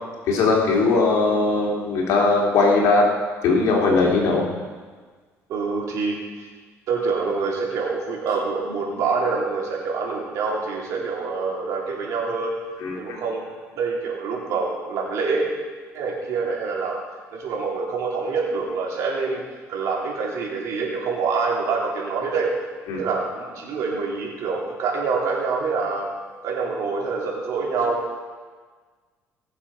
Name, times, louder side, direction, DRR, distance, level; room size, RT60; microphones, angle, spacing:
voice 1, 0.3-3.1 3.4-4.5 12.8-12.9 22.9-23.0, left 3 dB, 75° left, -1 dB, 3.0 m, -19 dB
voice 2, 5.5-6.5 6.9-12.6 13.0-13.4 13.8-15.5 15.9-17.0 17.3-19.4 19.7-22.5 23.0-26.1 26.4-28.0, right 4 dB, 65° right, -3 dB, 3.5 m, -26 dB
19.0 x 7.2 x 5.6 m, 1.5 s
cardioid pair, 125°, 6 cm